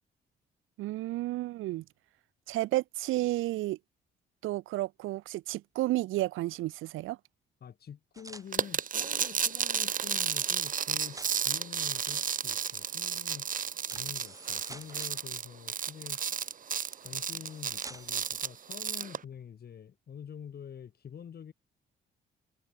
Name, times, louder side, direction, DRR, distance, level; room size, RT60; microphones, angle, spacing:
voice 1, 0.8-1.8 2.5-3.8 4.4-7.2, right 17 dB, 90° right, 1.0 m, -32 dB
voice 2, 7.6-13.5 13.9-16.2 17.0-21.5, left 8 dB, 55° left, 3.4 m, -47 dB
sound 1, 8.1-8.5 10.3-11.5 13.8-15.1 16.9-18.2, right 2 dB, 15° right, 4.2 m, -49 dB
sound 2, 8.5-19.2, right 7 dB, 40° right, 1.0 m, -32 dB
cardioid pair, 90°, 20 cm